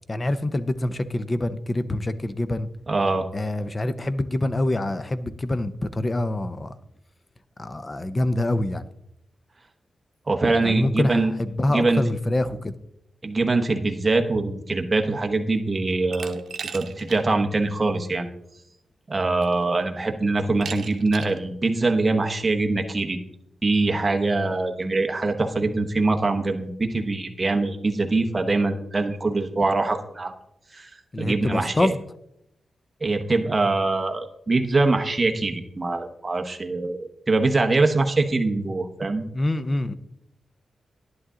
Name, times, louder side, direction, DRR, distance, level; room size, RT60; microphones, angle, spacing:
voice 1, 0.1-2.7 3.3-6.7 7.6-8.8 10.6-12.7 31.1-32.0 39.3-40.0, left 1 dB, 20° left, 13 dB, 0.5 m, -25 dB
voice 2, 2.9-3.3 10.3-11.3 11.7-12.0 13.2-18.3 19.1-23.2 23.6-30.3 30.7-30.9 31.2-31.9 33.0-39.2, right 3 dB, 20° right, 4 dB, 1.0 m, -23 dB
Glass, 16.1-17.2 17.6-17.7 18.8-18.9 19.4-19.8 20.6-21.4, right 6 dB, 60° right, 1.0 m, -37 dB
11.0 x 11.0 x 3.8 m, 0.79 s
wide cardioid pair, 175°, 0 cm